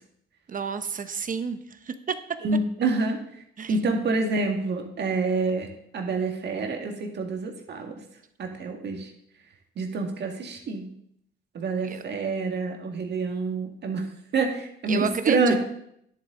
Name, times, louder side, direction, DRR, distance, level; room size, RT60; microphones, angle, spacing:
voice 1, 0.5-1.6 1.8-2.2 3.6-3.7 11.8-12.0 14.9-15.5, right 6 dB, 45° right, 10 dB, 0.9 m, -30 dB
voice 2, 2.4-3.2 3.7-5.7 5.9-8.0 8.4-9.1 9.8-10.9 11.5-14.1 14.3-15.6, right 3 dB, 60° right, 3 dB, 1.9 m, -27 dB
10.5 x 7.9 x 3.8 m, 0.72 s
cardioid pair, 90°, 20 cm